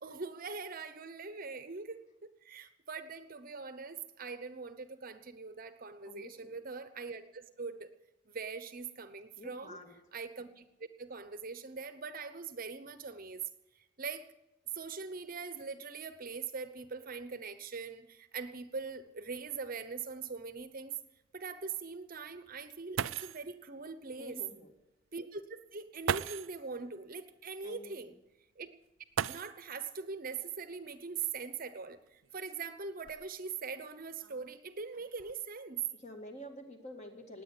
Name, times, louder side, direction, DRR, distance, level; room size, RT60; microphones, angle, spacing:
voice 1, 0.0-7.9 8.3-9.8 10.1-10.7 11.0-13.4 13.7-14.3 14.7-21.0 21.3-24.4 25.1-28.1 28.6-28.7 29.3-35.9, right 5 dB, 45° right, 11 dB, 0.9 m, -42 dB
voice 2, 6.1-6.5 9.4-9.9 24.2-24.7 27.6-28.1 36.0-37.4, left 1 dB, 35° left, 4 dB, 2.2 m, -48 dB
sound 1, 19.1-19.2 19.5-19.6 20.3-20.4 22.6-22.7 23.0-23.5 24.8-24.9 26.0-26.6 29.1-29.9 31.2-31.3 32.1-33.5 34.2-34.6 34.9-35.3, right 8 dB, 75° right, 0.4 m, -38 dB
19.5 x 8.6 x 8.3 m, 0.99 s
head